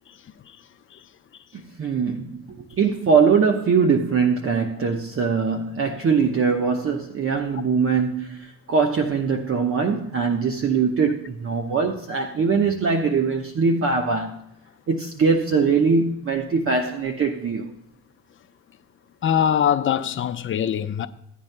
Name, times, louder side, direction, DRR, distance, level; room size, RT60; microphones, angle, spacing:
voice 1, 1.5-14.3 14.9-17.7, right 5 dB, 45° right, 1.0 m, -22 dB
voice 2, 19.2-21.1, left 9 dB, 40° left, 0.7 m, -22 dB
16.0 x 9.2 x 2.2 m
supercardioid pair, 75°, 32 cm